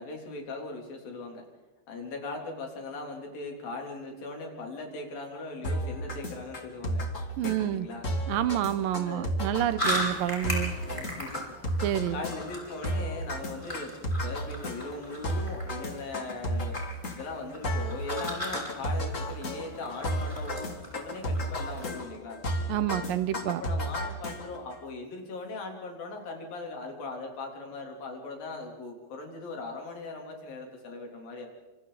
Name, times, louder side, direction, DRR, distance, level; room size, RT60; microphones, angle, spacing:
voice 1, 0.0-1.5 1.9-7.1 7.4-8.1 9.1-9.3 10.9-11.8 12.1-14.0 14.2-16.8 17.1-22.4 23.5-31.5, left 3 dB, 90° left, 2 dB, 5.2 m, -39 dB
sound 1, 5.6-24.7, equal, 25° left, 2.0 m, -33 dB
voice 2, 7.4-7.9 8.3-10.7 11.8-12.2 22.7-23.6, right 12 dB, 85° right, 14 dB, 2.6 m, -28 dB
sound 2, 9.8-22.0, equal, 10° left, 5.3 m, -38 dB
26.5 x 26.5 x 4.1 m, 1.2 s
omnidirectional pair, 3.9 m